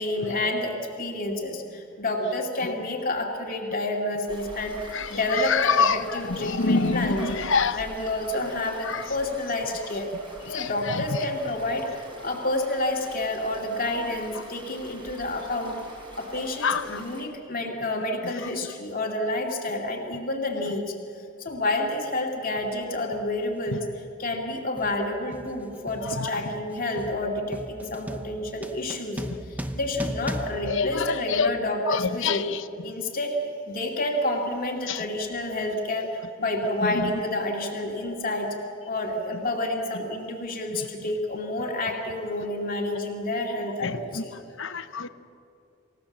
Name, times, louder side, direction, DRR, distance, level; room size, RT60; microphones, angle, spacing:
voice 1, 0.0-4.8 5.1-7.4 7.7-10.1 10.5-15.8 16.1-20.9 21.4-23.8 24.2-29.3 29.7-32.4 32.8-33.4 33.7-38.5 38.8-44.3, left 1 dB, 40° left, 0 dB, 2.5 m, -29 dB
voice 2, 2.2-2.7 4.9-7.8 8.8-9.2 10.5-11.3 14.3-14.4 16.6-17.0 18.2-18.5 20.6-20.7 23.7-23.8 26.0-26.4 30.6-31.5 31.8-32.7 34.9-35.1 36.8-37.2 40.7-40.8 43.8-45.1, left 5 dB, 60° left, 12 dB, 0.9 m, -27 dB
sound 1, 4.3-17.2, right 1 dB, 25° right, 4.7 m, -45 dB
sound 2, 21.5-21.6 22.6-22.8 23.1-31.7, equal, 5° right, 0.8 m, -38 dB
28.0 x 16.0 x 7.3 m, 2.5 s
head